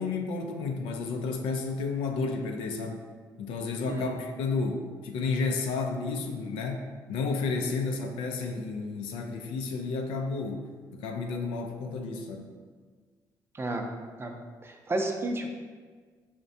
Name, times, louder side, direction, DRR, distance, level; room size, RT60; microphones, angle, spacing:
voice 1, 0.0-3.0 3.4-12.5, left 4 dB, 85° left, 3 dB, 0.4 m, -32 dB
voice 2, 14.6-15.5, right 2 dB, 25° right, 3 dB, 0.5 m, -31 dB
4.8 x 2.1 x 2.6 m, 1.5 s
supercardioid pair, 65°, 9 cm